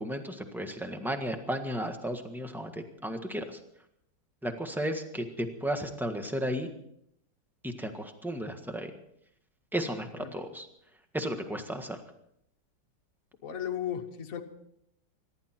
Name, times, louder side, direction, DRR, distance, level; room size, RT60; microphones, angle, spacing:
voice 1, 0.0-3.6 4.4-6.7 7.6-8.9 9.7-10.7 11.1-12.0, equal, ahead, 5 dB, 1.3 m, -34 dB
voice 2, 13.4-14.4, left 9 dB, 50° left, 4 dB, 1.6 m, -35 dB
25.5 x 11.5 x 4.5 m, 0.75 s
omnidirectional pair, 2.1 m